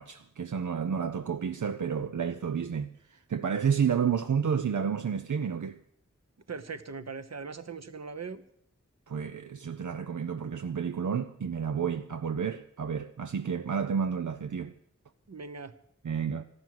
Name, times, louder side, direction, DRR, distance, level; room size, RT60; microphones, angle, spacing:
voice 1, 0.0-5.8 9.1-14.7 16.0-16.4, right 7 dB, 80° right, 0.6 m, -30 dB
voice 2, 6.5-8.4 15.3-15.7, right 5 dB, 60° right, 1.0 m, -40 dB
13.5 x 12.0 x 7.7 m
wide cardioid pair, 50°, 30 cm